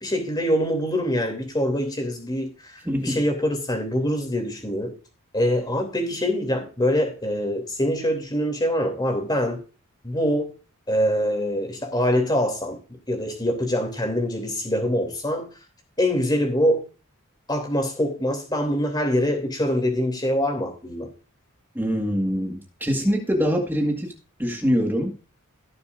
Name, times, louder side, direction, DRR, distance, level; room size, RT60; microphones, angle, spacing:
voice 1, 0.0-4.9 5.3-9.6 10.0-10.5 10.9-12.8 13.1-15.5 16.0-16.8 17.5-21.1, equal, 20° left, 3.0 m, -24 dB
voice 2, 2.9-3.2 21.8-24.1 24.4-25.1, equal, 10° right, 1.9 m, -24 dB
17.0 x 6.9 x 2.6 m
head